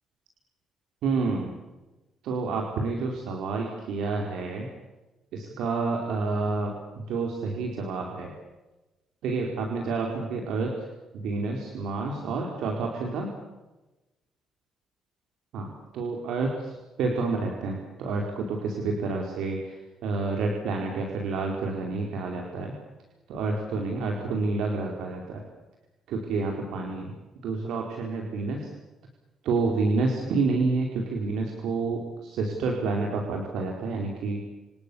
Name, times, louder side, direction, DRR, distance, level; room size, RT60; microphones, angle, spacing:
voice 1, 1.0-1.5 2.2-4.7 5.3-8.3 9.2-10.9 11.1-13.3 15.5-22.7 23.3-25.4 26.1-27.1 27.4-28.6 29.4-34.4, right 3 dB, 80° right, 1 dB, 4.9 m, -29 dB
29.0 x 28.0 x 7.3 m, 1.1 s
cardioid pair, 95°, 0 cm